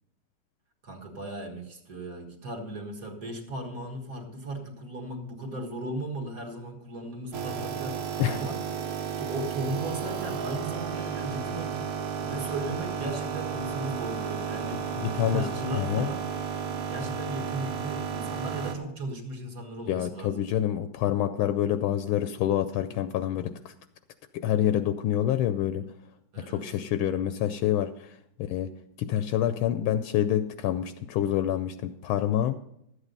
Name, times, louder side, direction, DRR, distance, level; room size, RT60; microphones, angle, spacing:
voice 1, 0.8-8.6 9.2-11.9 12.2-14.8 15.1-16.2 16.8-20.4 26.3-26.7, right 1 dB, 45° right, 2 dB, 1.8 m, -36 dB
sound 1, 7.3-18.8, right 7 dB, 80° right, 2.1 m, -33 dB
voice 2, 15.0-15.5 15.7-16.1 19.9-23.7 24.3-25.9 26.4-28.7 29.0-32.5, left 11 dB, 80° left, 10 dB, 1.4 m, -27 dB
12.5 x 8.1 x 5.3 m, 0.79 s
omnidirectional pair, 2.4 m